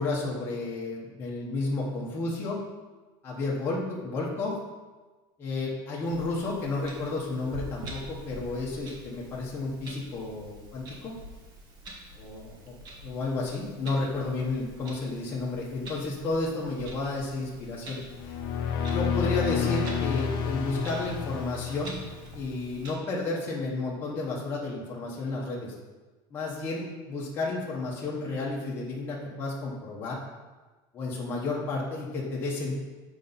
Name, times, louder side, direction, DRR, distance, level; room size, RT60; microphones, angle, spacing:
voice 1, 0.0-2.6 3.2-4.5 5.4-11.1 12.1-12.8 13.0-18.3 18.9-22.0 22.3-25.7 26.3-30.2 30.9-32.8, left 3 dB, 15° left, -5 dB, 1.0 m, -32 dB
Clock, 6.0-22.9, right 1 dB, 30° right, 1.1 m, -46 dB
sound 1, 18.1-22.5, left 6 dB, 60° left, 0.7 m, -30 dB
7.2 x 4.9 x 4.0 m, 1.3 s
cardioid pair, 180°, 13 cm